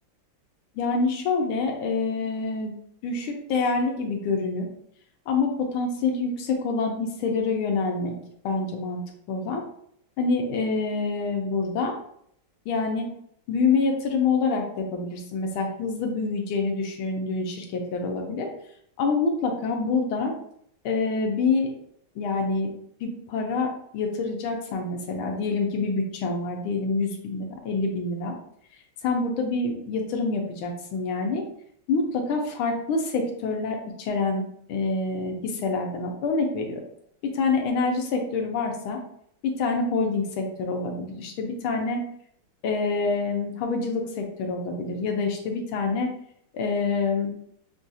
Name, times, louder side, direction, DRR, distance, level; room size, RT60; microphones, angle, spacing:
voice 1, 0.8-2.7 3.0-4.7 5.3-8.2 8.4-9.6 10.2-11.9 12.7-13.1 13.5-18.5 19.0-20.3 20.8-21.7 22.2-22.7 23.0-28.3 29.0-31.4 31.9-36.8 37.3-39.0 39.4-42.0 42.6-46.1 46.5-47.3, left 4 dB, 75° left, 2 dB, 1.5 m, -26 dB
6.0 x 2.4 x 2.7 m, 0.68 s
omnidirectional pair, 2.4 m